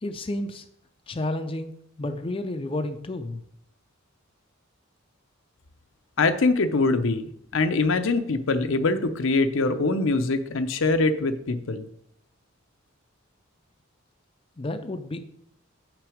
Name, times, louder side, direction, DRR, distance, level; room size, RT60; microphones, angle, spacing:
voice 1, 0.0-0.6 1.1-1.7 2.0-3.4 14.6-15.2, left 1 dB, 25° left, 6 dB, 0.5 m, -31 dB
voice 2, 6.2-11.9, left 3 dB, 65° left, 9 dB, 0.6 m, -23 dB
6.7 x 6.0 x 4.9 m, 0.71 s
head